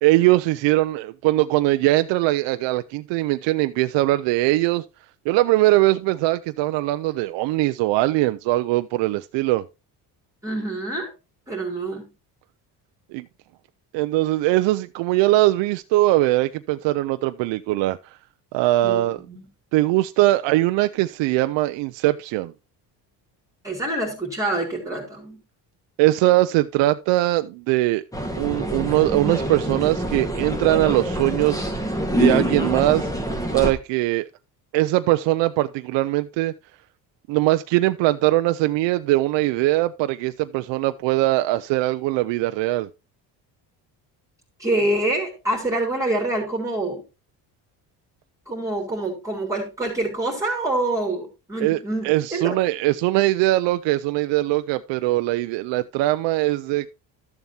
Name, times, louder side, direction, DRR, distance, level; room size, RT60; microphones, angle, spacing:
voice 1, 0.0-4.8 5.3-9.6 13.1-13.3 13.9-18.2 18.5-19.2 19.7-22.5 26.0-28.0 28.4-31.7 32.2-33.1 33.5-34.3 34.7-36.5 37.3-42.9 51.6-56.9, right 17 dB, 80° right, 0.6 m, -21 dB
voice 2, 10.4-11.1 11.5-12.1 18.8-19.4 23.6-25.4 44.6-47.0 48.5-52.1 52.3-52.6, right 2 dB, 5° right, 2.6 m, -26 dB
sound 1, 28.1-33.7, right 1 dB, 10° left, 1.4 m, -25 dB
12.5 x 7.2 x 2.7 m
cardioid pair, 120°, 42 cm